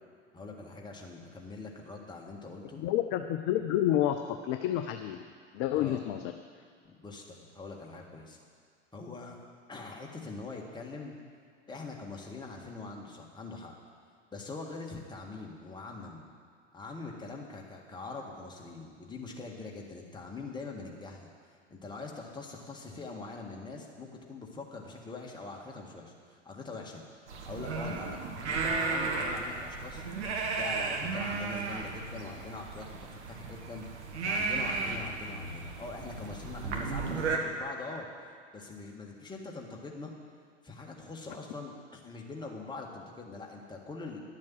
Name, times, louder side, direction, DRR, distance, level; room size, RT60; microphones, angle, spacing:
voice 1, 0.3-2.8 5.7-6.0 6.8-8.4 8.9-9.4 9.7-11.1 11.7-13.8 14.3-16.3 16.7-27.0 27.5-30.0 30.5-32.9 33.3-38.1 38.5-40.1 40.6-44.2, left 3 dB, 10° left, -1 dB, 1.8 m, -43 dB
voice 2, 2.8-5.2 5.5-6.3, left 12 dB, 35° left, 7 dB, 0.6 m, -29 dB
sound 1, 27.3-37.4, right 4 dB, 65° right, 1.6 m, -34 dB
11.0 x 7.4 x 7.7 m, 2.2 s
figure-of-eight pair, 85°, 37 cm